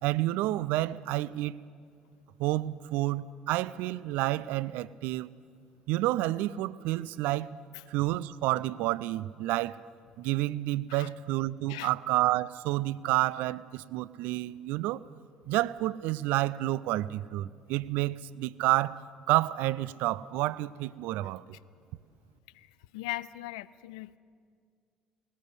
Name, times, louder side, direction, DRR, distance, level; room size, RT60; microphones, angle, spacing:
voice 1, 0.0-1.6 2.4-5.3 5.9-7.6 7.9-9.8 10.2-15.0 15.5-19.0 19.3-21.4, right 16 dB, 60° right, 20 dB, 0.4 m, -29 dB
voice 2, 22.9-24.2, left 17 dB, 70° left, 17 dB, 0.4 m, -39 dB
19.5 x 18.0 x 8.1 m, 2.1 s
figure-of-eight pair, 50°, 3 cm